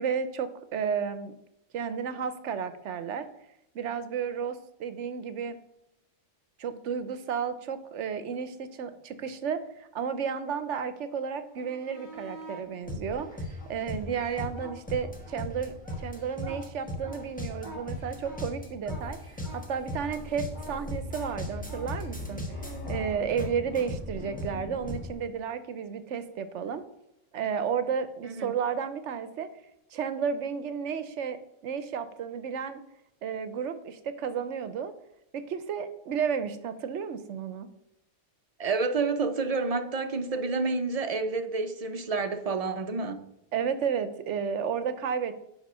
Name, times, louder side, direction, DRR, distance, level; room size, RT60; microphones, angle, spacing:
voice 1, 0.0-1.3 1.7-3.3 3.7-5.6 6.6-22.5 22.9-26.8 27.3-29.5 29.9-31.4 31.6-32.8 33.2-34.9 35.3-37.7 43.5-45.4, right 7 dB, 75° right, 1.0 m, -32 dB
sound 1, 11.4-12.7 13.3-15.4 15.7-23.9 26.6-26.8, equal, 40° left, 2.3 m, -47 dB
sound 2, 12.8-25.1, left 1 dB, 5° left, 1.4 m, -37 dB
voice 2, 28.2-28.5 38.6-43.2, right 4 dB, 35° right, 0.7 m, -29 dB
8.0 x 5.2 x 5.5 m
omnidirectional pair, 1.3 m